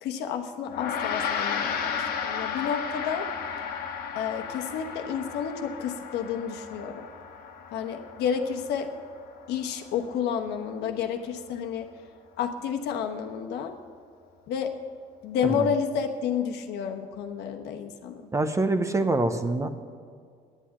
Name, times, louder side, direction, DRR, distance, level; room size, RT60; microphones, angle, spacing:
voice 1, 0.0-3.3 3.7-3.8 4.1-7.1 7.7-8.9 9.5-11.9 12.4-13.7 14.5-14.7 15.2-18.3, left 7 dB, 85° left, 5 dB, 1.1 m, -30 dB
Gong, 0.7-10.2, left 7 dB, 65° left, 1.3 m, -34 dB
voice 2, 18.3-19.7, right 2 dB, 15° right, 9 dB, 0.7 m, -25 dB
10.0 x 8.2 x 8.8 m, 2.1 s
cardioid pair, 110°, 17 cm